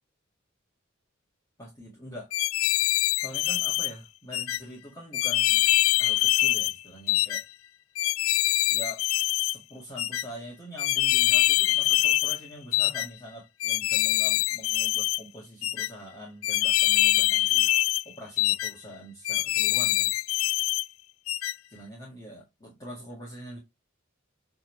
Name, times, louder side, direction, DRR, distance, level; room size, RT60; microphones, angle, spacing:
voice 1, 1.6-2.3 3.2-5.7 6.0-7.4 8.7-20.1 21.7-23.6, equal, 20° left, 1.9 m, -44 dB
sound 1, 2.3-3.9 4.3-4.6 5.1-6.7 7.1-7.4 8.0-9.6 10.0-10.2 10.8-12.4 12.7-13.1 13.6-15.2 15.6-15.9 16.4-18.0 18.4-18.7 19.2-20.8 21.3-21.5, left 16 dB, 75° left, 0.3 m, -24 dB
8.7 x 3.6 x 3.1 m
head